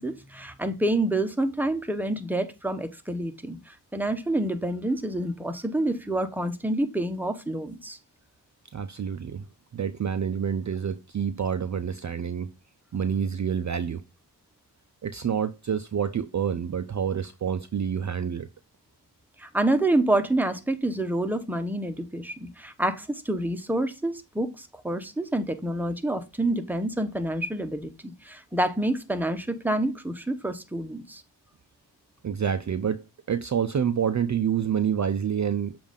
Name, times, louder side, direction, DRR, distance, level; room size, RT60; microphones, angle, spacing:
voice 1, 0.0-8.0 19.4-31.2, right 1 dB, 5° right, 0.8 m, -28 dB
voice 2, 8.7-9.5 9.7-12.5 12.9-14.0 15.0-18.5 32.2-35.8, right 8 dB, 45° right, 0.4 m, -28 dB
7.2 x 2.6 x 5.1 m
wide cardioid pair, 70°, 41 cm